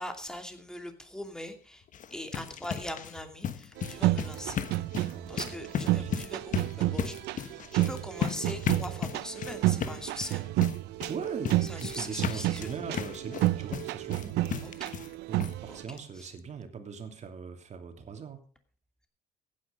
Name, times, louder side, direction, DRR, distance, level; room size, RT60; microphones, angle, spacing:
voice 1, 0.0-1.8 2.1-4.6 5.3-10.5 11.6-12.7 14.6-14.9 15.7-16.3, left 1 dB, 5° left, 6 dB, 2.7 m, -41 dB
sound 1, 1.8-15.1 15.4-15.5 16.0-16.1 16.4-16.5, left 8 dB, 50° left, 1.2 m, -36 dB
sound 2, 3.8-15.8, right 16 dB, 85° right, 0.7 m, -31 dB
voice 2, 5.0-5.6 5.8-6.2 11.1-14.4 15.3-18.4, right 6 dB, 45° right, 6 dB, 3.0 m, -40 dB
15.5 x 9.8 x 5.4 m, 0.42 s
cardioid pair, 110°, 17 cm